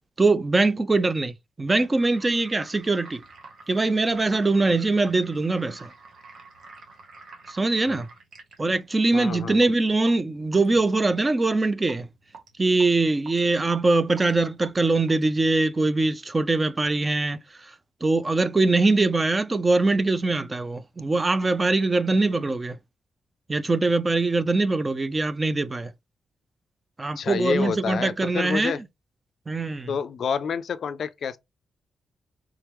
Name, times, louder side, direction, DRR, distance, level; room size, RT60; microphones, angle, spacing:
voice 1, 0.2-3.2 3.7-5.9 7.5-8.1 8.6-12.1 12.6-17.7 18.0-22.8 23.5-25.9 27.0-28.7 29.5-29.9, right 3 dB, 20° right, 0.4 m, -22 dB
sound 1, 1.9-15.6, right 3 dB, 65° right, 1.1 m, -48 dB
voice 2, 9.1-9.6 27.2-28.8 29.9-31.4, left 6 dB, 60° left, 0.3 m, -28 dB
3.6 x 3.4 x 3.0 m
cardioid pair, 125°, 0 cm